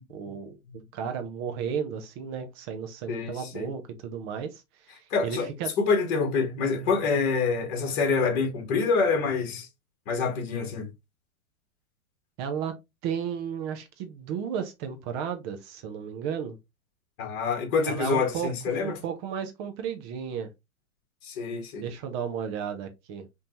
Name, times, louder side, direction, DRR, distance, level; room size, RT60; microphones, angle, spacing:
voice 1, 0.1-0.6 0.9-4.6 4.9-5.7 12.4-12.7 13.0-16.6 17.9-18.5 18.8-20.5 21.8-23.3, right 7 dB, 20° right, 0.4 m, -33 dB
voice 2, 3.1-3.7 5.1-5.5 5.8-9.7 10.1-10.9 17.2-19.0 21.2-21.9, left 4 dB, 45° left, 2.3 m, -26 dB
5.5 x 2.7 x 2.9 m
hypercardioid pair, 140°, 43 cm